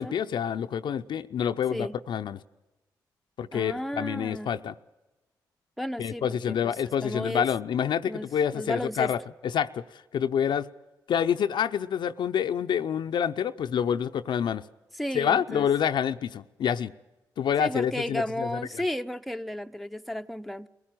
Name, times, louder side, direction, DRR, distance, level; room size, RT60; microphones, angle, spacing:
voice 1, 0.0-2.4 3.4-4.7 6.0-9.2 9.5-9.8 10.1-10.7 11.1-14.6 15.1-16.9 17.4-18.5, left 8 dB, 70° left, 0.6 m, -27 dB
voice 2, 3.5-4.5 5.8-7.5 8.0-8.3 8.5-9.1 14.9-15.7 17.6-20.7, left 1 dB, ahead, 0.8 m, -33 dB
22.5 x 16.0 x 9.1 m
supercardioid pair, 50°, 8 cm